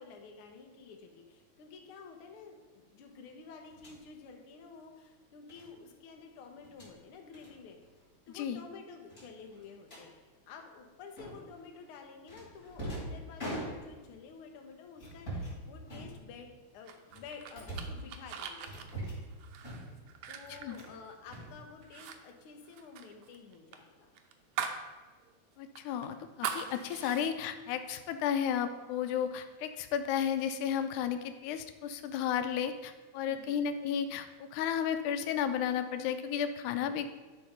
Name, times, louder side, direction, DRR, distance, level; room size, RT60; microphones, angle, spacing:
voice 1, 0.0-7.8 8.3-16.5 16.7-18.9 20.3-24.1 33.3-33.7 36.7-37.1, left 5 dB, 60° left, 3 dB, 1.5 m, -51 dB
Opening Door, 3.7-4.0 5.5-5.7 6.6-6.9 7.3-7.5 7.8-8.0 8.3-8.4 9.1-10.1 11.2-11.6 12.3-14.1 15.0-15.6 15.9-16.6 17.1-18.0 18.7-19.3 19.6-20.1 20.4-21.0 21.3-22.1, right 1 dB, 20° left, 2.6 m, -42 dB
voice 2, 8.3-8.6 20.6-20.8 25.6-37.1, left 8 dB, 85° left, 9 dB, 2.1 m, -33 dB
sound 1, 16.9-21.5 21.8-22.2 22.4-24.9 25.2-25.3 25.7-27.3, right 8 dB, 75° right, 1.5 m, -41 dB
11.0 x 4.3 x 5.2 m, 1.3 s
omnidirectional pair, 3.4 m